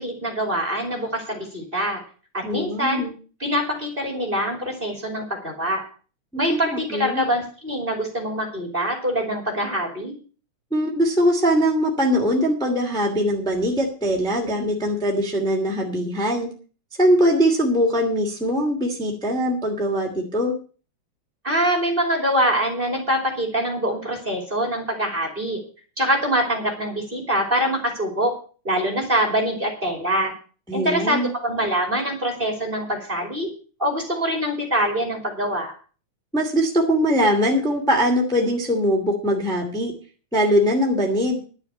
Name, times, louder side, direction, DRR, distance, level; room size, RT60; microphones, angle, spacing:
voice 1, 0.0-2.0 2.3-3.0 3.4-5.8 6.4-10.1 21.4-25.6 26.0-28.3 28.6-30.3 30.7-33.5 33.8-35.7, equal, 20° right, 2 dB, 2.7 m, -24 dB
voice 2, 2.4-3.1 6.3-7.2 10.7-16.5 17.0-20.5 30.7-31.3 36.3-39.9 40.3-41.4, equal, ahead, -1 dB, 2.2 m, -21 dB
11.0 x 7.1 x 8.0 m, 0.39 s
omnidirectional pair, 3.3 m